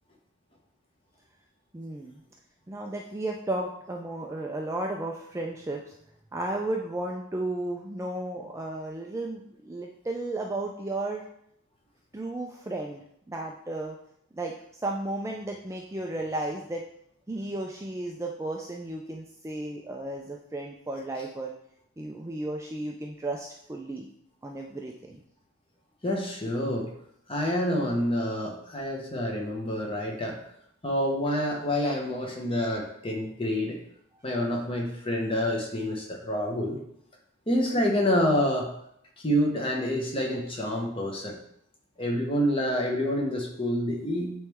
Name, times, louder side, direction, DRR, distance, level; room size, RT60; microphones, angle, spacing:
voice 1, 1.7-2.2 2.7-5.9 6.3-11.2 12.1-14.0 14.3-14.5 14.8-16.9 17.3-21.5 22.0-24.1 24.4-25.2, right 2 dB, 15° right, 0 dB, 0.3 m, -34 dB
voice 2, 26.0-26.9 27.3-30.4 30.8-33.8 34.2-36.8 37.5-38.7 39.2-41.4 42.0-44.3, equal, 25° left, 0 dB, 1.0 m, -27 dB
8.6 x 3.1 x 3.5 m, 0.73 s
head